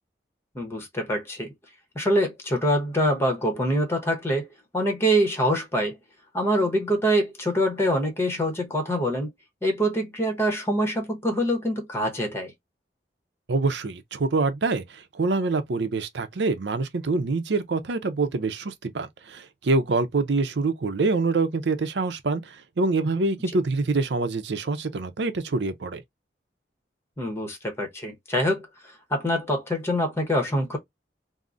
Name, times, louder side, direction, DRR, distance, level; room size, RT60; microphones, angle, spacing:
voice 1, 0.5-1.5 1.9-4.5 4.7-6.0 6.3-9.3 9.6-12.5 27.2-30.8, equal, 15° left, 0.8 m, -25 dB
voice 2, 13.5-26.0, right 3 dB, 75° right, 0.6 m, -25 dB
3.6 x 2.0 x 2.5 m
head